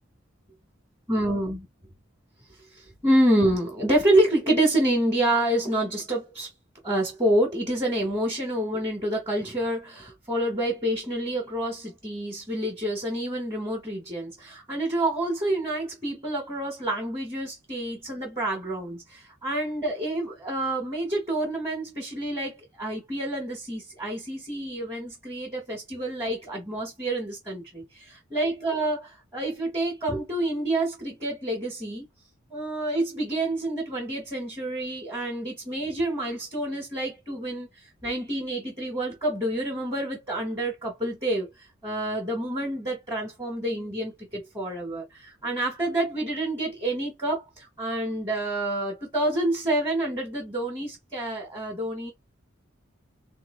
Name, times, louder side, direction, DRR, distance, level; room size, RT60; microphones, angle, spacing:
voice 1, 1.1-1.7 2.8-6.5 6.8-32.0 32.5-37.7 38.0-41.5 41.8-52.1, right 1 dB, 15° right, 1.0 m, -28 dB
2.6 x 2.4 x 3.5 m
head